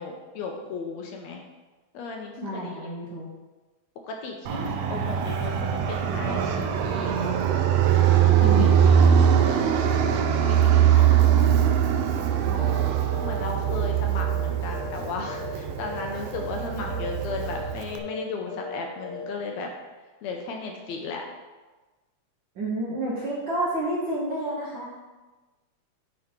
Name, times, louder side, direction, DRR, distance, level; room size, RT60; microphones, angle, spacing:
voice 1, 0.0-1.4 1.9-2.9 4.0-7.4 8.2-9.5 10.4-11.4 13.2-19.7 20.2-21.2, left 4 dB, 75° left, 2 dB, 1.8 m, -35 dB
voice 2, 2.4-3.3 8.4-9.1 10.8-11.0 12.4-12.8 22.6-24.9, right 1 dB, 55° right, -6 dB, 1.4 m, -30 dB
Fixed-wing aircraft airplane, 4.5-18.0, right 9 dB, 85° right, 1.4 m, -22 dB
sound 1, 12.5-12.8 13.1-13.3 13.6-15.0 15.2-15.5 15.8-16.0 16.3-16.6 16.8-17.1 17.4-17.7 17.9-18.2 18.4-18.7 19.0-19.3, left 4 dB, 5° left, 1.6 m, -38 dB
9.6 x 3.9 x 4.4 m, 1.2 s
omnidirectional pair, 3.5 m